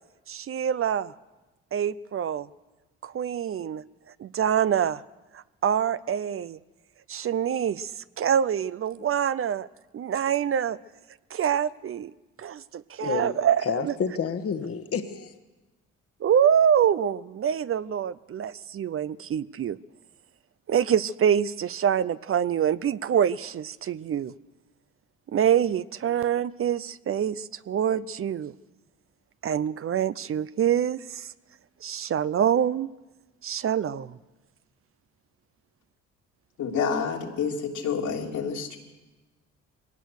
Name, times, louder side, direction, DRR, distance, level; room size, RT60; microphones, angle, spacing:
voice 1, 0.3-1.1 1.7-2.5 3.0-3.8 4.2-5.0 5.3-6.6 7.1-9.7 9.9-10.8 11.3-12.1 12.4-13.9 16.2-19.8 20.7-24.3 25.3-28.5 29.4-31.3 31.8-32.9 33.4-34.2, right 9 dB, 45° right, 0.6 m, -25 dB
voice 2, 13.0-15.3, left 6 dB, 50° left, 1.5 m, -30 dB
voice 3, 36.6-38.8, left 6 dB, 75° left, 3.3 m, -28 dB
22.5 x 18.5 x 6.5 m
cardioid pair, 90°, 30 cm